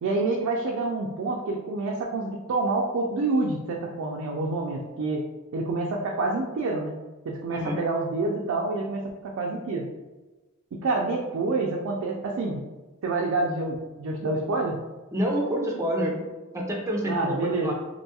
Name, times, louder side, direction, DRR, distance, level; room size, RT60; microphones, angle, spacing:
voice 1, 0.0-5.3 5.5-6.9 7.3-9.9 10.7-12.6 13.0-14.8 17.1-17.7, right 3 dB, 75° right, -1 dB, 0.3 m, -27 dB
voice 2, 7.5-7.8 15.1-16.2 16.5-17.7, equal, 15° right, -2 dB, 0.4 m, -27 dB
2.5 x 2.2 x 2.8 m, 1.2 s
head